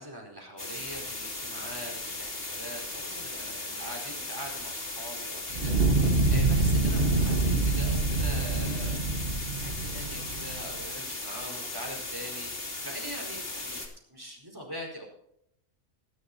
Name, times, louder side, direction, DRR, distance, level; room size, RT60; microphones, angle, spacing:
voice 1, 0.0-9.3 9.5-13.8 14.1-15.1, equal, 15° right, -1 dB, 4.4 m, -43 dB
sound 1, 0.6-13.9, left 2 dB, 45° left, 2.8 m, -37 dB
Fire, 5.5-10.7, right 2 dB, 45° right, 1.6 m, -26 dB
19.5 x 11.0 x 2.8 m, 0.75 s
omnidirectional pair, 1.4 m